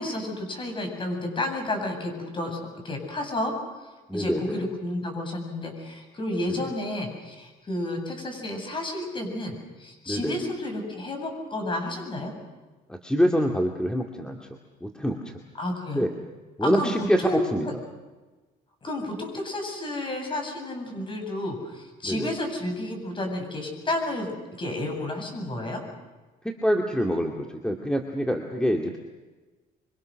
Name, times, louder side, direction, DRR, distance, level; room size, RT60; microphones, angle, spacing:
voice 1, 0.0-3.5 4.1-12.3 15.6-16.1 16.6-17.5 18.8-24.3 24.6-25.8, left 1 dB, 30° left, 4 dB, 7.9 m, -31 dB
voice 2, 4.1-4.6 6.5-6.7 10.1-10.4 12.9-14.4 14.8-15.3 15.9-16.1 16.6-17.7 22.0-22.3 26.4-29.0, equal, 5° left, 2 dB, 2.3 m, -26 dB
25.5 x 25.0 x 6.5 m, 1.2 s
cardioid pair, 110°, 17 cm